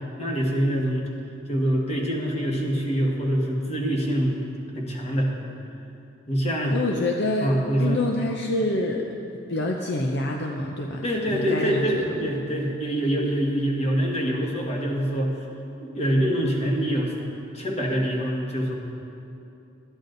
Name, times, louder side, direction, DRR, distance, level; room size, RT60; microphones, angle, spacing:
voice 1, 0.2-1.1 1.5-4.4 4.7-5.4 6.3-6.8 7.4-8.0 11.0-15.3 15.8-17.1 17.5-18.7, equal, 35° left, -1 dB, 1.5 m, -25 dB
voice 2, 6.7-9.1 9.5-12.1, left 2 dB, 65° left, 1 dB, 0.7 m, -27 dB
13.0 x 10.0 x 3.9 m, 2.7 s
head